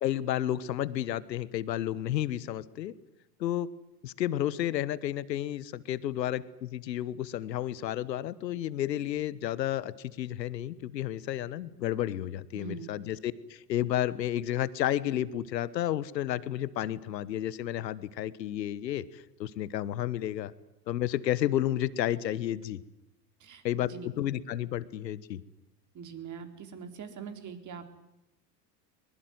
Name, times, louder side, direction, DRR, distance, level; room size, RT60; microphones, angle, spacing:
voice 1, 0.0-2.9 3.4-3.7 4.0-20.5 20.9-22.8 23.6-25.4, left 12 dB, 85° left, 17 dB, 1.3 m, -31 dB
voice 2, 12.5-12.9 23.4-24.1 25.9-27.9, right 6 dB, 35° right, 8 dB, 4.1 m, -43 dB
23.0 x 21.0 x 9.4 m, 0.87 s
hypercardioid pair, 90°, 49 cm